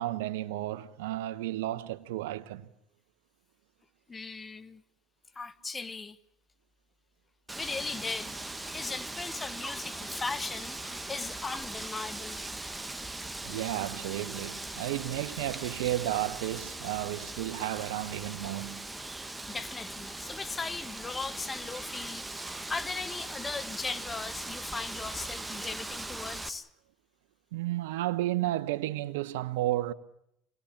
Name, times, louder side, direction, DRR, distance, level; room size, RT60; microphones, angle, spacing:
voice 1, 0.0-2.7 13.4-18.9 27.5-29.9, right 15 dB, 80° right, 1.0 m, -32 dB
voice 2, 4.1-4.8 5.3-6.2 7.6-8.4 8.7-12.4 19.5-22.4 22.7-26.7, left 4 dB, 25° left, 1.3 m, -38 dB
Wind, 7.5-26.5, right 2 dB, 10° right, 1.4 m, -40 dB
26.0 x 19.0 x 8.7 m
hypercardioid pair, 80°, 0 cm